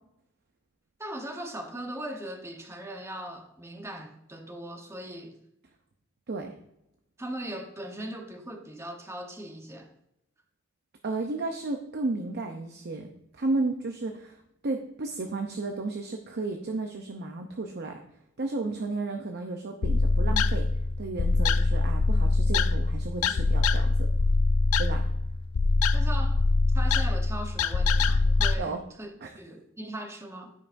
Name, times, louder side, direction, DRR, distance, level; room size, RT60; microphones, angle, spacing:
voice 1, 1.0-5.3 7.2-9.9 23.3-23.5 25.9-26.4 26.7-29.1 29.4-30.5, right 1 dB, 15° right, 3 dB, 1.0 m, -39 dB
voice 2, 11.0-14.4 14.6-18.0 18.4-20.7 21.0-24.1 24.8-25.0 28.6-28.8 29.2-29.3, right 3 dB, 50° right, 4 dB, 0.7 m, -33 dB
sound 1, 19.8-28.5, left 3 dB, 85° left, 0.5 m, -24 dB
14.0 x 5.5 x 2.6 m, 0.79 s
head